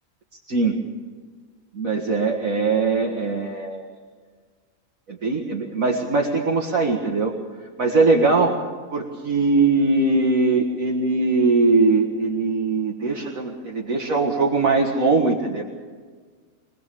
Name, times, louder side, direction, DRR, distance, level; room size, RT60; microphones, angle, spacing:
voice 1, 1.7-3.9 5.1-7.3 7.8-8.5 8.9-15.6, right 3 dB, 70° right, -1 dB, 2.2 m, -21 dB
24.5 x 19.0 x 7.0 m, 1.5 s
omnidirectional pair, 1.5 m